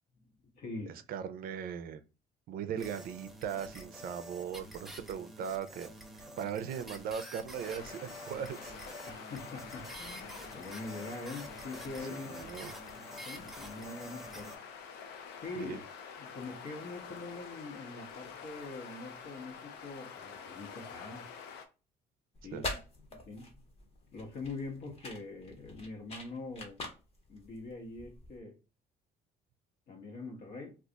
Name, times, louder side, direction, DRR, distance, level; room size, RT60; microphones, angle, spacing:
voice 1, 0.1-1.0 2.7-2.8 9.0-12.7 13.1-14.6 15.4-15.8 16.2-21.3 22.4-22.7 23.1-23.7 24.1-26.8 27.3-28.6 29.9-30.7, left 3 dB, 65° left, 1.1 m, -44 dB
voice 2, 0.9-2.0 2.5-5.9 6.1-8.8 12.1-12.7 15.6-15.8 22.5-22.7, right 8 dB, 60° right, 0.4 m, -39 dB
sound 1, 2.8-14.6, right 1 dB, ahead, 0.5 m, -48 dB
sound 2, 7.6-21.7, left 6 dB, 85° left, 0.5 m, -47 dB
sound 3, 22.3-28.4, left 2 dB, 35° left, 0.9 m, -44 dB
2.4 x 2.3 x 3.8 m
cardioid pair, 110°, 17 cm